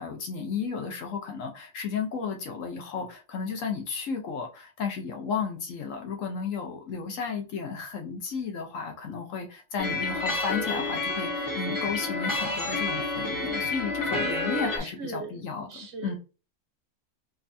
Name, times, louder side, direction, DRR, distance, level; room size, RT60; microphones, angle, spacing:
voice 1, 0.0-16.2, left 5 dB, 75° left, 1.2 m, -33 dB
sound 1, 9.8-14.8, left 3 dB, 20° left, 0.7 m, -29 dB
voice 2, 14.8-15.4 15.7-16.1, right 3 dB, 60° right, 1.0 m, -39 dB
5.1 x 2.2 x 2.6 m
omnidirectional pair, 1.4 m